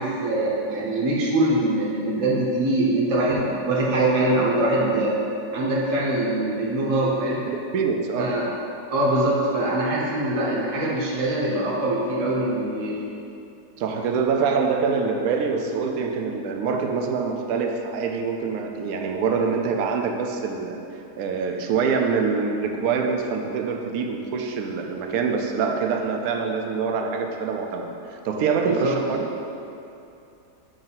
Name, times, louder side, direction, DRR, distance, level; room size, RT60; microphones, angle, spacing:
voice 1, 0.0-5.2 5.5-7.4 8.2-8.5 8.9-13.0 28.6-29.0, right 1 dB, 30° right, -5 dB, 0.8 m, -23 dB
voice 2, 7.5-8.4 13.8-20.8 21.2-29.3, right 5 dB, 70° right, 3 dB, 1.0 m, -25 dB
6.7 x 2.7 x 5.5 m, 2.7 s
omnidirectional pair, 1.7 m